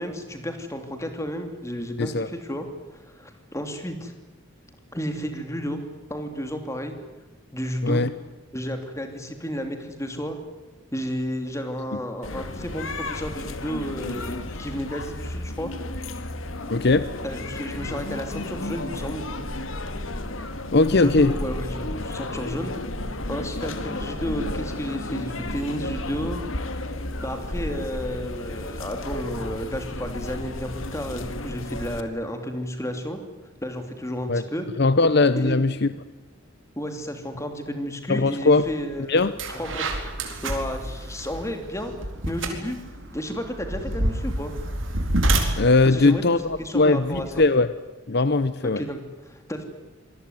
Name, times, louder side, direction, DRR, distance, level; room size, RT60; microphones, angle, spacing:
voice 1, 0.0-2.7 2.9-4.1 4.9-5.8 6.1-6.9 7.5-8.0 8.5-10.4 10.9-15.7 17.2-19.2 20.9-22.7 23.1-26.4 27.2-33.2 33.6-34.7 35.4-35.6 36.8-39.2 39.5-40.0 40.4-41.9 42.3-42.8 43.1-44.5 45.8-47.4 48.6-49.6, equal, 15° left, 6 dB, 3.2 m, -32 dB
sound 1, 12.2-32.0, left 2 dB, 75° left, 2.1 m, -33 dB
voice 2, 16.7-17.1 20.7-21.3 34.3-34.4 34.8-35.9 38.1-38.7 39.1-39.3 45.6-47.7 48.1-48.8, left 3 dB, 55° left, 13 dB, 0.8 m, -20 dB
sound 2, 38.7-38.8 39.2-47.5, right 1 dB, 65° right, 4.3 m, -28 dB
26.0 x 20.5 x 9.6 m, 1.1 s
head